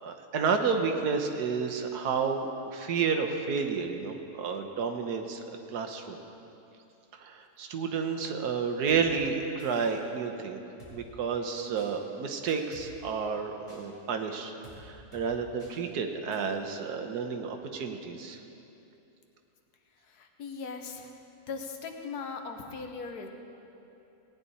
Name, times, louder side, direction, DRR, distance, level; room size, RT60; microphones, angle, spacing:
voice 1, 0.0-5.4 5.7-6.2 7.1-10.6 10.9-18.4, right 5 dB, 85° right, 5 dB, 1.4 m, -31 dB
Drum kit, 8.9-9.0 9.6-10.0 10.8-10.9 11.8-11.9 12.5-12.9 13.7-13.8 14.6-14.8 15.1-15.3 15.6-15.7 16.3-16.4, equal, 25° left, 3.8 m, -51 dB
voice 2, 20.0-21.2 21.5-23.3, left 5 dB, 75° left, 4 dB, 1.5 m, -39 dB
18.0 x 9.3 x 4.2 m, 2.8 s
omnidirectional pair, 1.7 m